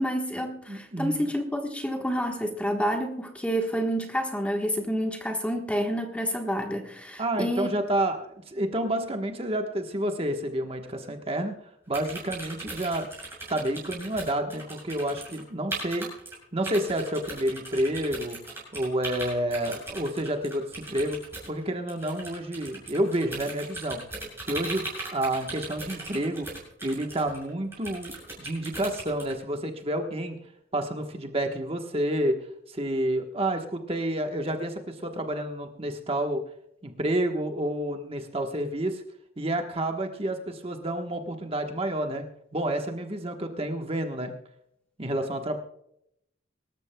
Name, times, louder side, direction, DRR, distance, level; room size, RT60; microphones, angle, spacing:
voice 1, 0.0-7.7, equal, 5° left, 3 dB, 1.3 m, -29 dB
voice 2, 0.7-1.3 7.2-11.5 11.9-13.1 13.5-16.1 16.5-18.4 18.7-21.2 21.5-24.0 24.4-26.5 26.8-30.4 30.7-32.4 32.7-36.4 36.8-39.0 39.4-42.2 42.5-44.3 45.0-45.6, right 1 dB, 30° right, 4 dB, 1.2 m, -29 dB
sound 1, 11.9-15.4 15.7-16.4 16.6-29.3, right 2 dB, 10° right, 7.1 m, -38 dB
25.0 x 13.5 x 2.3 m, 0.74 s
head